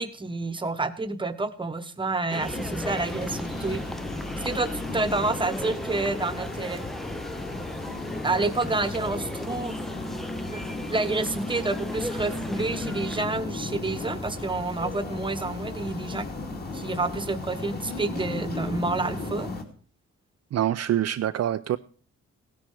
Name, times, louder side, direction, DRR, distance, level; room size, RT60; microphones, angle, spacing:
voice 1, 0.0-3.8 4.4-6.8 8.2-9.8 10.5-10.6 10.9-16.3 16.7-19.5, right 3 dB, 15° right, 1.2 m, -29 dB
sound 1, 2.3-13.2, equal, ahead, 0.5 m, -37 dB
sound 2, 2.4-19.6, left 2 dB, 30° left, 2.7 m, -35 dB
voice 2, 20.5-21.8, right 11 dB, 55° right, 0.5 m, -25 dB
17.0 x 10.5 x 4.8 m
wide cardioid pair, 155°, 30 cm